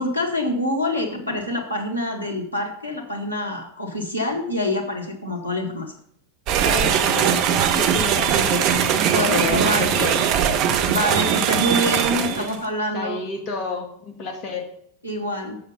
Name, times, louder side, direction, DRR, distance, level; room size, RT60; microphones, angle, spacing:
voice 1, 0.0-5.9 8.3-8.4 8.9-10.2 10.9-13.2 15.0-15.6, left 1 dB, 90° right, 2 dB, 1.6 m, -26 dB
sound 1, 6.5-12.6, right 8 dB, 40° right, 0.7 m, -20 dB
voice 2, 6.6-10.6 12.1-12.5 12.9-14.8, left 4 dB, 35° left, 3 dB, 1.9 m, -31 dB
7.7 x 6.4 x 5.6 m, 0.67 s
figure-of-eight pair, 90°, 0 cm